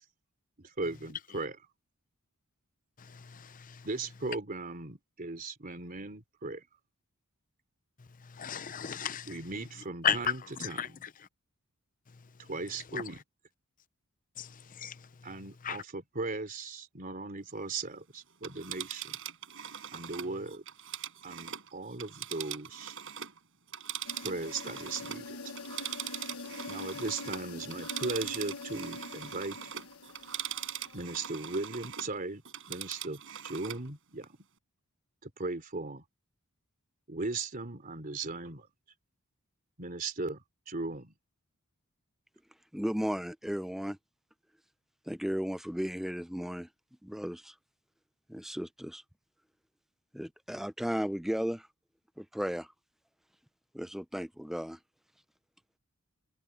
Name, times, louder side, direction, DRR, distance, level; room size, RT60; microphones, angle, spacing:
voice 1, 0.6-1.5 3.8-6.6 9.3-10.8 12.5-13.2 15.2-19.2 19.9-20.6 21.2-23.0 24.2-25.4 26.7-29.6 30.9-32.4 32.7-34.3 35.2-36.0 37.1-38.7 39.8-41.1, right 3 dB, 40° right, 3.3 m, -38 dB
voice 2, 3.0-3.9 8.0-9.5 10.0-11.3 12.1-12.5 12.9-13.2 14.4-15.8, left 8 dB, 40° left, 0.7 m, -36 dB
Telephone, 18.3-23.4 23.7-32.2 32.5-33.9 34.2-34.3, right 10 dB, 60° right, 6.7 m, -41 dB
sound 1, 24.1-31.6, left 3 dB, 75° left, 1.2 m, -45 dB
voice 3, 42.7-44.0 45.1-46.7 47.0-47.5 48.3-49.0 50.1-51.7 52.2-52.7 53.7-54.8, equal, ahead, 0.5 m, -35 dB
head